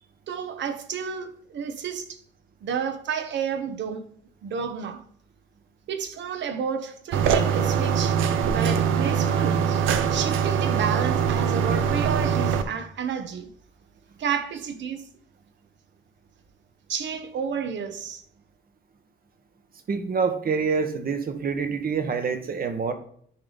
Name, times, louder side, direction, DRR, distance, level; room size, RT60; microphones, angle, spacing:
voice 1, 0.3-2.2 2.6-4.1 4.4-5.0 5.9-13.5 14.2-15.1 16.9-18.2, right 6 dB, 65° right, 1.0 m, -31 dB
sound 1, 7.1-12.6, right 7 dB, 85° right, 0.7 m, -23 dB
voice 2, 19.9-22.9, right 5 dB, 45° right, 1.2 m, -26 dB
10.0 x 3.4 x 3.8 m
cardioid pair, 90°, 20 cm